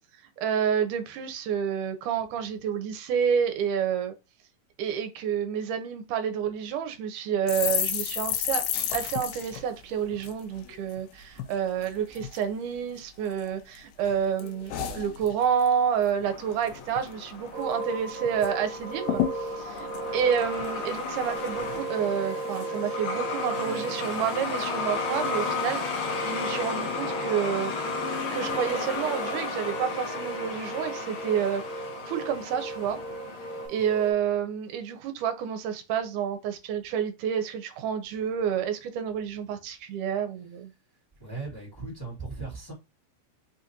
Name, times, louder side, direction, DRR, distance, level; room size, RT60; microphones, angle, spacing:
voice 1, 0.4-4.1 4.8-8.6 8.9-27.7 28.3-31.6 32.0-33.0 33.7-40.7, right 8 dB, 80° right, 2.1 m, -29 dB
sound 1, 7.5-11.0 11.3-11.5 11.8-12.4 13.0-13.8 14.0-15.7 16.0-16.3 16.5-17.1 17.5-17.6 17.8-18.5 18.8-18.9 19.1-21.0 21.4-21.8, left 10 dB, 80° left, 2.3 m, -32 dB
Truck, 16.2-33.7, left 4 dB, 60° left, 1.6 m, -34 dB
sound 2, 17.5-34.1, right 3 dB, 60° right, 2.1 m, -36 dB
voice 2, 41.2-42.7, right 3 dB, 10° left, 1.1 m, -38 dB
5.6 x 2.5 x 2.9 m
omnidirectional pair, 3.9 m